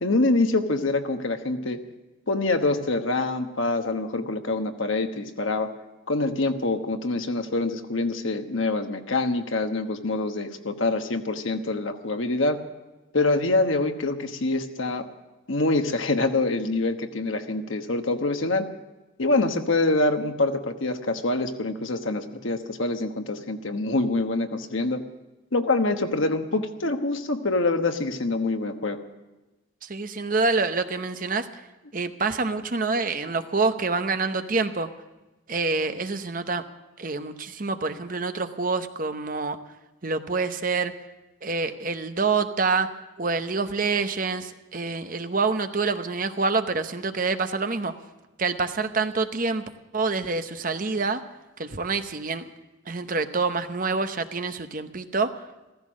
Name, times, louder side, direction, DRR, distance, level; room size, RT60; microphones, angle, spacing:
voice 1, 0.0-1.8 2.3-5.7 6.1-12.6 13.1-15.0 15.5-18.7 19.2-25.0 25.5-29.0, left 2 dB, 75° left, 6 dB, 1.2 m, -25 dB
voice 2, 29.8-31.5 31.9-34.9 35.5-36.6 37.0-39.6 40.0-40.9 41.4-42.9 43.2-47.9 48.4-49.6 49.9-51.2 51.6-52.5 52.9-55.3, right 4 dB, 40° right, 9 dB, 0.8 m, -26 dB
15.0 x 15.0 x 6.3 m, 1.1 s
head